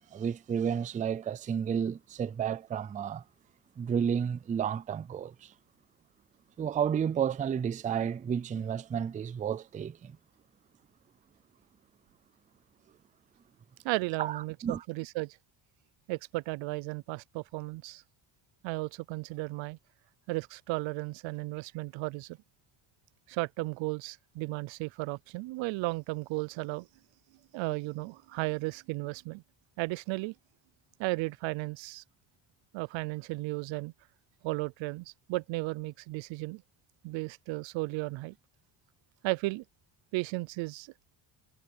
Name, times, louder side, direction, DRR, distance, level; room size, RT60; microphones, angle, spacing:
voice 1, 0.1-3.2 3.8-5.5 6.6-10.1 14.2-14.8, right 8 dB, 20° right, 0.3 m, -31 dB
voice 2, 13.8-15.4 16.1-18.0 18.6-19.8 20.3-22.4 23.3-26.9 27.5-29.4 29.8-30.3 31.0-32.0 32.7-33.9 34.4-36.6 37.0-38.3 39.2-39.6 40.1-41.2, right 22 dB, 80° right, 0.6 m, -34 dB
cardioid pair, 130°, 44 cm